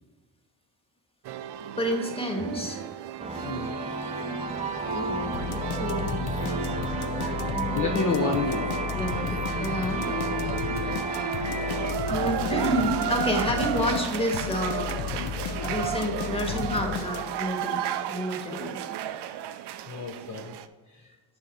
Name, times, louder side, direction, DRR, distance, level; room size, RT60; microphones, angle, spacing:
sound 1, 1.3-20.7, right 8 dB, 60° right, 0.5 m, -34 dB
voice 1, 1.8-2.8 3.3-3.4 4.9-6.2 7.2-8.2 9.0-10.1 10.8-11.1 12.0-15.3 15.6-17.8 18.1-18.8, equal, 10° left, 3 dB, 1.6 m, -30 dB
sound 2, 3.2-11.9, right 3 dB, 15° right, 0.6 m, -33 dB
voice 2, 3.4-3.8 7.7-8.7 19.9-20.5 20.9-21.0, left 4 dB, 40° left, 1 dB, 0.8 m, -29 dB
sound 3, 5.3-17.5, left 7 dB, 70° left, 0.7 m, -34 dB
6.4 x 4.9 x 4.2 m, 1.4 s
supercardioid pair, 50°, 48 cm